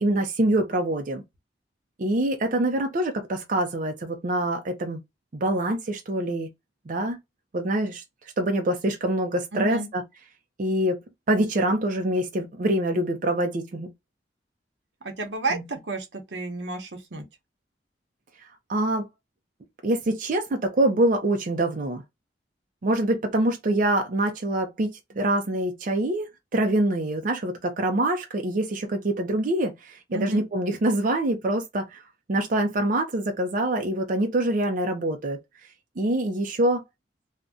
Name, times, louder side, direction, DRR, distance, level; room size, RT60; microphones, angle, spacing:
voice 1, 0.0-1.2 2.0-5.0 5.3-6.5 6.9-7.2 7.5-8.0 8.4-10.0 10.6-11.0 11.3-13.9 15.5-15.6 18.7-19.1 19.8-22.0 22.8-26.3 26.5-32.0 32.3-35.4 36.0-36.8, right 1 dB, 50° right, 0.5 m, -25 dB
voice 2, 9.5-9.9 15.0-17.2 30.1-30.4, right 3 dB, 85° right, 0.8 m, -31 dB
2.5 x 2.1 x 3.5 m
head